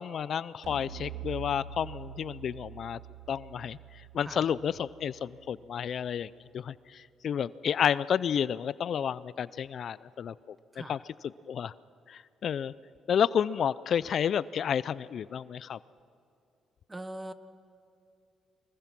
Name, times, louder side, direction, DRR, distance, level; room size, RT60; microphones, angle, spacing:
voice 1, 0.0-3.0 3.3-3.8 4.1-10.3 10.9-11.0 11.5-11.7 12.1-12.7 13.1-15.8, left 8 dB, 60° left, 18 dB, 0.4 m, -30 dB
sound 1, 0.6-6.0, right 8 dB, 75° right, 3.2 m, -45 dB
voice 2, 10.7-11.0 16.9-17.3, right 1 dB, 15° right, 12 dB, 1.1 m, -41 dB
24.5 x 21.0 x 6.1 m, 2.6 s
cardioid pair, 90°, 0 cm